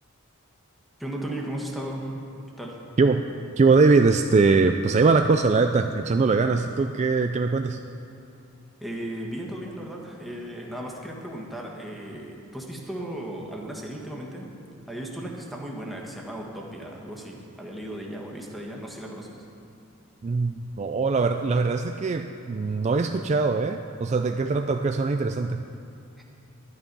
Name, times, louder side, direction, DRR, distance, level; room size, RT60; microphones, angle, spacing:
voice 1, 1.0-2.1 2.6-2.8 8.8-14.5 14.9-19.4, right 1 dB, ahead, -2 dB, 1.5 m, -36 dB
voice 2, 3.6-7.8 20.2-25.7, right 4 dB, 35° right, 6 dB, 0.3 m, -22 dB
11.5 x 11.0 x 5.4 m, 2.7 s
head